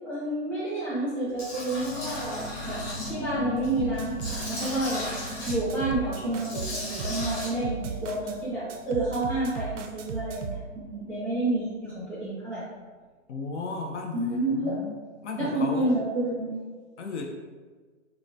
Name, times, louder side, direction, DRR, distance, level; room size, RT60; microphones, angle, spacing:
voice 1, 0.0-2.8 3.1-5.1 5.4-12.6 14.1-14.8 15.4-16.6, right 1 dB, 5° left, -12 dB, 0.7 m, -29 dB
sound 1, 1.2-12.4 12.8-12.9, left 1 dB, 80° left, 1.0 m, -41 dB
Tools, 1.4-3.1 3.6-5.5 6.3-7.5, left 1 dB, 30° left, 1.3 m, -36 dB
sound 2, 3.8-4.9 5.3-8.4 8.7-10.6, right 5 dB, 70° right, 0.5 m, -36 dB
voice 2, 13.3-14.9 15.2-15.9 17.0-17.2, left 3 dB, 60° left, 2 dB, 0.6 m, -35 dB
4.7 x 2.2 x 2.5 m, 1.4 s
hypercardioid pair, 155°, 39 cm